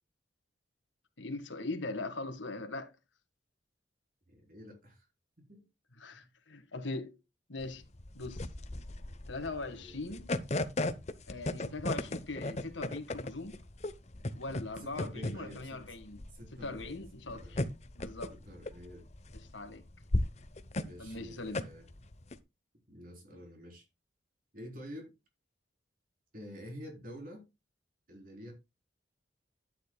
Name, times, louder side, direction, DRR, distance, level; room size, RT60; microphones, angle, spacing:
voice 1, 1.2-2.9 6.0-7.1 7.5-7.8 8.1-8.5 9.3-10.3 11.3-13.6 14.4-16.2 16.6-17.6 18.0-18.3 19.5-19.8 21.0-21.6, left 2 dB, 85° left, 1.8 m, -40 dB
voice 2, 4.3-5.1 5.4-5.7 6.0-6.3 9.7-10.4 14.8-15.8 16.3-17.0 17.3-17.7 18.3-19.1 20.8-21.9 22.9-23.9 24.5-25.1 26.3-27.5 28.1-28.5, equal, 50° right, 3.9 m, -49 dB
sound 1, 7.6-22.4, left 1 dB, 35° left, 0.8 m, -36 dB
11.5 x 9.2 x 2.3 m
head